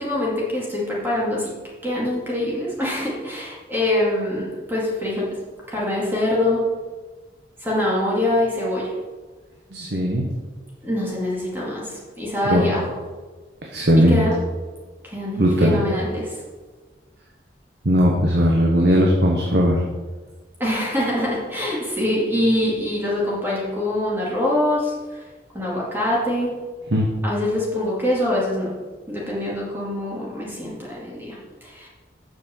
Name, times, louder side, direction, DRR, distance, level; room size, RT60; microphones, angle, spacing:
voice 1, 0.0-1.5 1.8-5.4 5.7-6.6 7.6-8.9 10.8-12.9 14.0-14.4 15.0-16.4 20.6-25.2 25.5-26.5 27.2-28.7 29.1-31.9, left 1 dB, 10° right, -5 dB, 2.4 m, -24 dB
voice 2, 9.7-10.3 12.4-12.7 13.7-14.2 15.4-15.8 17.8-19.8 26.9-27.1, equal, 65° right, -1 dB, 1.4 m, -18 dB
7.7 x 6.3 x 7.2 m, 1.3 s
head